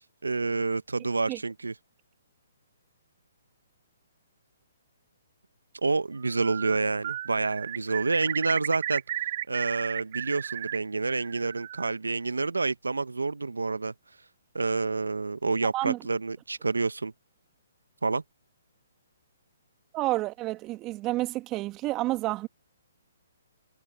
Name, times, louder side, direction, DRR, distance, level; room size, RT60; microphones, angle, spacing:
voice 1, 0.2-1.7 5.8-9.0 9.5-13.9 14.5-17.1 18.0-18.2, right 3 dB, 85° right, 0.9 m, -28 dB
Bird, 6.2-6.8 7.0-10.8 11.1-11.9, right 13 dB, 45° right, 1.9 m, -34 dB
voice 2, 19.9-22.5, right 17 dB, 25° right, 2.0 m, -29 dB
figure-of-eight pair, 130°, 0 cm